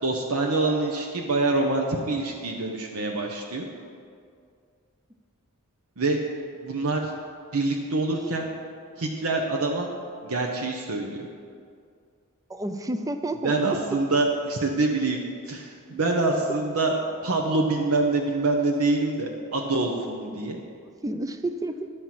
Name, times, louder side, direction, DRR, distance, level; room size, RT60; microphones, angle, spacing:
voice 1, 0.0-3.7 6.0-6.2 6.6-7.1 7.5-8.5 9.0-9.9 10.2-11.3 13.4-15.2 15.5-16.9 17.2-20.6, right 2 dB, 75° right, 1 dB, 0.8 m, -25 dB
voice 2, 12.5-13.8 20.3-20.4 21.0-21.9, right 1 dB, 15° right, 8 dB, 0.4 m, -30 dB
11.0 x 4.4 x 7.5 m, 2.2 s
head